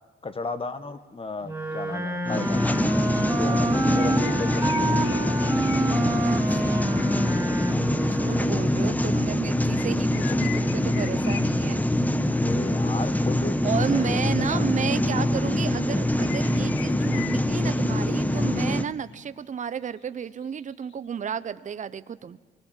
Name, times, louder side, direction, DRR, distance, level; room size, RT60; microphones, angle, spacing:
voice 1, 0.2-2.7 3.1-5.0 12.3-15.4, left 3 dB, 30° left, 11 dB, 1.5 m, -35 dB
Wind instrument woodwind instrument, 1.4-8.8, right 1 dB, 10° right, 2.7 m, -28 dB
sound 1, 2.3-18.8, left 1 dB, 10° left, 1.0 m, -24 dB
sound 2, 3.6-6.5 8.3-8.4 9.7-11.9 16.0-17.9 18.3-18.5 18.9-19.0 19.2-19.3 19.5-19.6 20.2-20.9, left 11 dB, 80° left, 0.9 m, -41 dB
voice 2, 6.2-7.2 8.1-11.8 13.1-13.2 13.6-22.4, right 7 dB, 40° right, 14 dB, 0.8 m, -32 dB
24.0 x 19.0 x 7.5 m, 1.4 s
cardioid pair, 90°, 20 cm